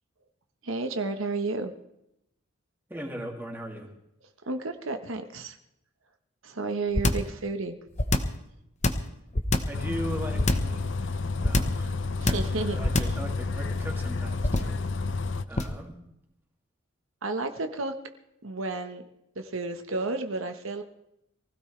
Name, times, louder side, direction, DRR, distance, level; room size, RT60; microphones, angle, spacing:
voice 1, 0.6-1.7 4.4-5.6 6.4-7.8 12.2-13.1 17.2-17.9 18.4-19.0 19.3-20.8, right 3 dB, 80° right, 7 dB, 1.3 m, -32 dB
voice 2, 2.9-3.9 9.7-12.4 12.7-14.8 15.5-16.0, right 1 dB, 10° right, 0 dB, 2.5 m, -39 dB
sound 1, 6.9-7.3 8.0-8.4 8.8-9.8 10.4-10.8 11.4-11.8 12.3-12.6 12.8-13.2 14.4-14.8 15.6-15.8, left 2 dB, 35° left, 1.1 m, -24 dB
Bus, 9.7-15.4, left 3 dB, 60° left, 0.7 m, -30 dB
23.5 x 16.0 x 3.4 m, 0.81 s
head